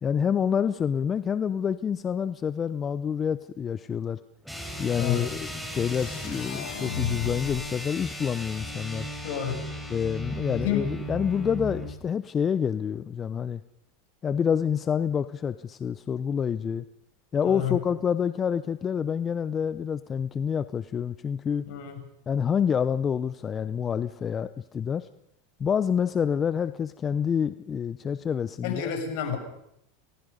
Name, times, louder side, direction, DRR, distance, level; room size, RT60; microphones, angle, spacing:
voice 1, 0.0-4.2 4.8-9.1 9.9-13.6 14.2-16.8 17.3-21.7 22.3-25.1 25.6-28.9, left 7 dB, 30° left, 14 dB, 0.7 m, -27 dB
sound 1, 4.4-12.0, equal, ahead, 5.7 m, -36 dB
sound 2, 5.9-7.9, left 8 dB, 80° left, 1.3 m, -35 dB
voice 2, 9.2-9.6 10.5-10.8 17.4-17.8 21.7-21.9 28.6-29.4, left 9 dB, 65° left, 5 dB, 6.7 m, -29 dB
28.0 x 20.0 x 5.4 m, 0.76 s
hypercardioid pair, 100°, 0 cm